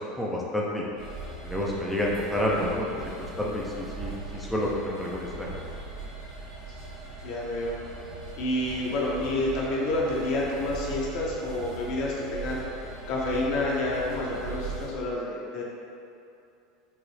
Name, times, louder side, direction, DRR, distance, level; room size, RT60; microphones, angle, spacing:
voice 1, 0.2-0.9 1.4-3.1 3.4-5.5, left 1 dB, ahead, -5 dB, 0.5 m, -29 dB
sound 1, 1.0-14.9, right 3 dB, 60° right, 0.9 m, -40 dB
voice 2, 7.2-7.8 8.4-12.6 13.1-15.6, left 1 dB, 55° left, -4 dB, 0.7 m, -29 dB
4.6 x 2.0 x 3.2 m, 2.7 s
figure-of-eight pair, 75°, 0 cm